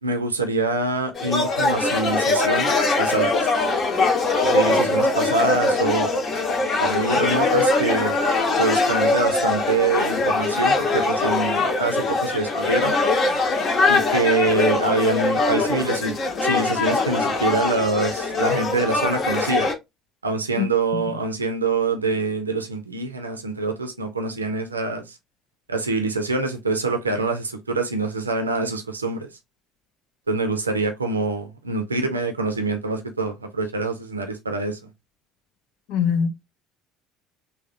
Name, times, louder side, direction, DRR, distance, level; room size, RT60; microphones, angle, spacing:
voice 1, 0.0-3.5 4.4-6.1 6.8-8.2 8.5-12.9 13.9-16.2 16.4-19.7 20.2-25.2 25.7-29.3 30.3-34.8, right 3 dB, 85° right, 0.4 m, -25 dB
sound 1, 1.1-19.7, left 3 dB, 40° left, 0.8 m, -22 dB
voice 2, 35.9-36.3, left 7 dB, 60° left, 0.4 m, -22 dB
3.4 x 2.2 x 2.5 m
figure-of-eight pair, 55°, 0 cm